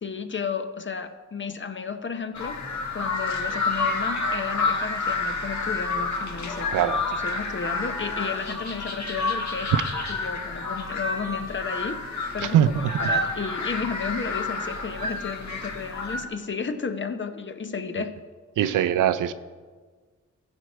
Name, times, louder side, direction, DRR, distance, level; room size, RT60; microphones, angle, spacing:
voice 1, 0.0-2.6 2.9-9.7 10.1-18.2 18.6-18.9, left 5 dB, 40° left, 9 dB, 0.9 m, -33 dB
sound 1, 2.3-16.3, left 3 dB, 65° left, 1.4 m, -29 dB
voice 2, 6.7-7.0 9.7-9.8 12.5-12.9 18.6-19.3, right 10 dB, 90° right, 14 dB, 0.5 m, -21 dB
14.5 x 5.3 x 4.5 m, 1.5 s
cardioid pair, 50°, 31 cm